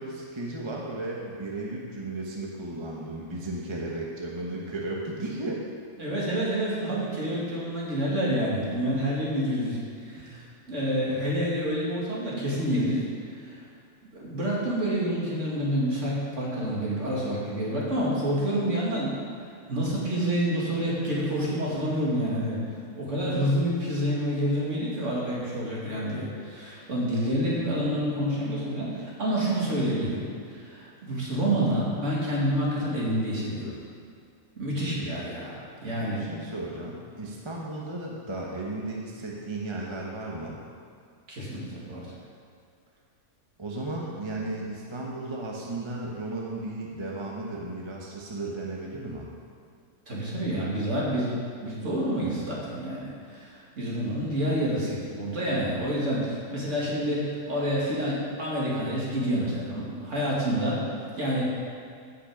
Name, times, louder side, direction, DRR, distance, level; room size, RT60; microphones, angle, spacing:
voice 1, 0.0-5.6 10.2-10.4 36.0-40.6 43.6-49.3, right 2 dB, 20° right, -3 dB, 1.0 m, -35 dB
voice 2, 6.0-13.0 13.4-13.6 14.2-19.2 19.7-22.6 23.0-30.2 30.5-33.8 34.6-36.3 41.3-42.0 50.1-60.8 61.2-61.5, equal, 50° right, -6 dB, 2.7 m, -28 dB
14.5 x 5.9 x 5.1 m, 2.3 s
omnidirectional pair, 1.6 m